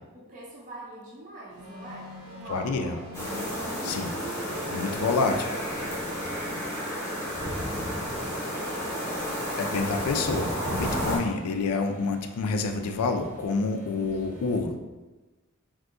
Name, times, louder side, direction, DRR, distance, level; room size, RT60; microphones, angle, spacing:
voice 1, 0.0-3.1 3.4-3.9 6.6-8.9, right 2 dB, 35° right, -5 dB, 0.5 m, -46 dB
sound 1, 1.5-14.6, right 1 dB, 70° right, 0.8 m, -46 dB
voice 2, 2.5-2.9 3.8-4.2 4.7-5.5 9.6-14.8, left 4 dB, 80° left, 5 dB, 0.4 m, -28 dB
sound 2, 3.1-11.2, equal, 15° left, 0.8 m, -31 dB
3.6 x 2.7 x 2.4 m, 1.2 s
head